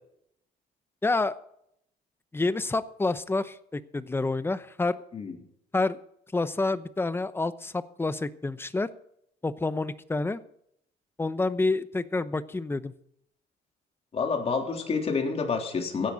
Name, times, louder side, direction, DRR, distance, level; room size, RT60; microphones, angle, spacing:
voice 1, 1.0-1.4 2.3-5.0 5.7-6.0 6.3-8.9 9.4-10.4 11.2-12.9, left 3 dB, 15° left, 14 dB, 0.9 m, -28 dB
voice 2, 14.1-16.1, left 5 dB, 35° left, 3 dB, 3.4 m, -28 dB
16.0 x 11.0 x 4.0 m, 0.72 s
cardioid pair, 110°, 17 cm